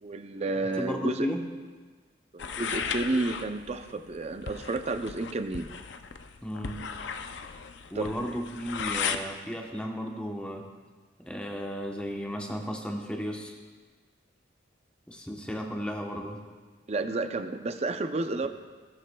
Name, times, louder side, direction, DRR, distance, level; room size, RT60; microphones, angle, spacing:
voice 1, 0.0-1.3 2.3-5.7 7.9-8.2 16.9-18.5, right 2 dB, 35° right, 8 dB, 0.5 m, -31 dB
voice 2, 0.8-1.5 6.4-6.8 7.9-10.7 11.2-13.6 15.1-16.4, equal, 5° left, 1 dB, 0.9 m, -34 dB
sound 1, 2.4-9.2, left 6 dB, 70° left, 0.5 m, -36 dB
19.5 x 7.5 x 2.2 m, 1.4 s
head